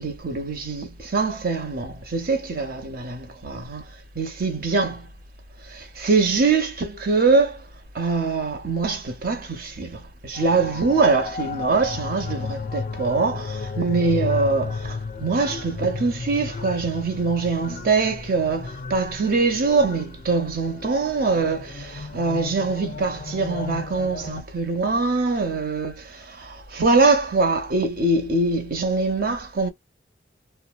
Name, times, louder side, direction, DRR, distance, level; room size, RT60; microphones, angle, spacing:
voice 1, 0.0-3.9 4.1-5.1 5.6-7.6 7.9-29.7, right 3 dB, 55° right, 0.8 m, -23 dB
sound 1, 10.3-24.4, left 4 dB, 45° left, 0.3 m, -34 dB
2.7 x 2.1 x 2.3 m
head